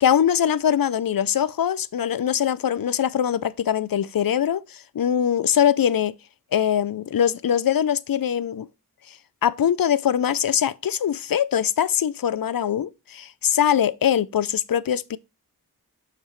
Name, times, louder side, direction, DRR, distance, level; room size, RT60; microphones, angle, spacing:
voice 1, 0.0-6.1 6.5-8.7 9.4-15.2, left 9 dB, 70° left, 0.5 m, -22 dB
7.2 x 5.9 x 3.1 m
wide cardioid pair, 45°, 36 cm